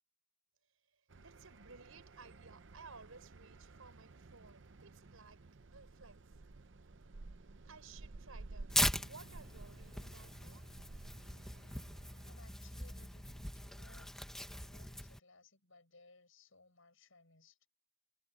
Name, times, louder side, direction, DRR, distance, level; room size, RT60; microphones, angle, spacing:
sound 1, 1.1-12.3, right 3 dB, 55° right, 0.7 m, -54 dB
voice 1, 1.2-6.3 7.7-10.7, right 4 dB, 80° right, 5.4 m, -57 dB
Tearing, 8.7-15.2, left 1 dB, ahead, 1.2 m, -40 dB
voice 2, 12.2-14.1 14.5-17.7, left 3 dB, 70° left, 7.8 m, -63 dB
head